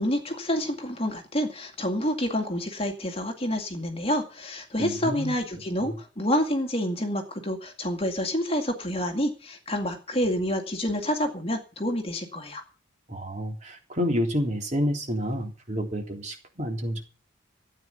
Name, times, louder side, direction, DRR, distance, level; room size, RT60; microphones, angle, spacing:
voice 1, 0.0-12.6, equal, 30° left, 4 dB, 2.2 m, -28 dB
voice 2, 4.8-5.3 5.8-6.0 13.1-17.0, equal, 35° right, 3 dB, 3.4 m, -29 dB
14.5 x 9.2 x 6.9 m, 0.35 s
head